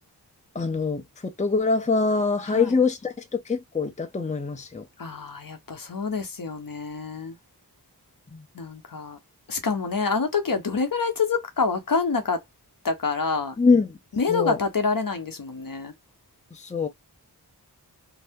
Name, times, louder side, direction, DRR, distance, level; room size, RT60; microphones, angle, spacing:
voice 1, 0.5-4.8 8.3-8.4 13.6-14.0 14.3-14.6 16.5-16.9, left 4 dB, 20° left, 0.6 m, -24 dB
voice 2, 2.5-2.8 5.0-7.4 8.5-9.2 9.5-12.4 12.8-13.6 14.1-15.9, left 4 dB, 55° left, 0.8 m, -27 dB
2.7 x 2.1 x 3.5 m
wide cardioid pair, 70°, 40 cm